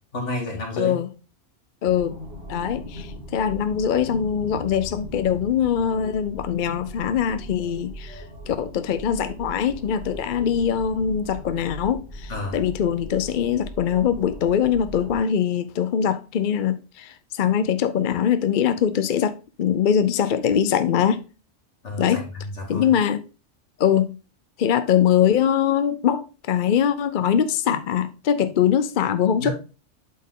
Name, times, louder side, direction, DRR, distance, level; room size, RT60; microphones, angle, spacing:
voice 1, 0.1-1.0 3.0-3.2 12.3-12.6 21.8-22.9 29.4-29.5, left 2 dB, 75° left, 2.6 m, -31 dB
voice 2, 0.8-1.1 1.8-2.2 2.5-21.2 22.0-22.2 22.7-23.2 23.8-24.2 24.6-29.5, left 8 dB, 55° left, 0.6 m, -22 dB
sound 1, 1.8-15.1, equal, 65° right, 2.3 m, -39 dB
8.2 x 4.4 x 3.7 m
omnidirectional pair, 1.2 m